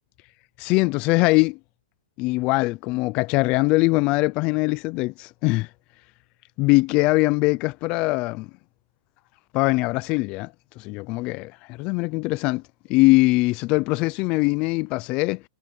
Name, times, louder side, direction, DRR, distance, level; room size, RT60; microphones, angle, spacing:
voice 1, 0.6-1.6 2.2-5.7 6.6-8.5 9.5-12.6 12.9-15.4, left 23 dB, 30° left, 0.4 m, -22 dB
hypercardioid pair, 160°, 3 cm